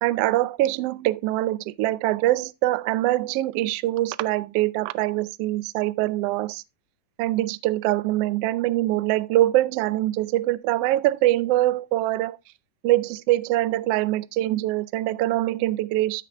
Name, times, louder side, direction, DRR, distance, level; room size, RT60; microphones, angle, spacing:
voice 1, 0.0-6.6 7.2-12.4 12.8-16.2, right 15 dB, 80° right, 1.3 m, -23 dB
14.0 x 5.9 x 3.4 m
omnidirectional pair, 3.4 m